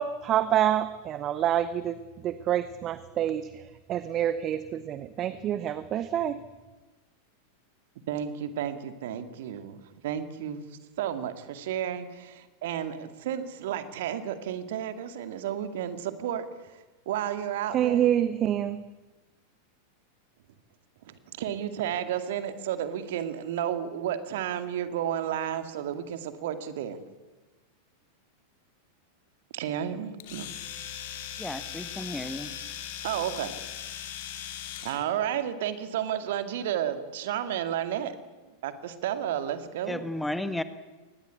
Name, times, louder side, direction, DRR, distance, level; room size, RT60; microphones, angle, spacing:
voice 1, 0.0-2.0 2.2-3.5 3.9-6.4 17.7-18.8, right 11 dB, 30° right, 14 dB, 1.0 m, -27 dB
voice 2, 8.1-10.6 11.0-18.1 21.0-27.0 29.5-30.5 33.0-33.5 34.8-38.2 38.6-40.1, right 10 dB, 55° right, 10 dB, 2.2 m, -32 dB
Domestic sounds home sounds, 30.2-35.0, left 10 dB, 55° left, 3.0 m, -39 dB
voice 3, 31.4-32.5 39.9-40.6, left 1 dB, 5° left, 12 dB, 1.3 m, -33 dB
24.0 x 20.0 x 8.5 m, 1.2 s
figure-of-eight pair, 90°, 0 cm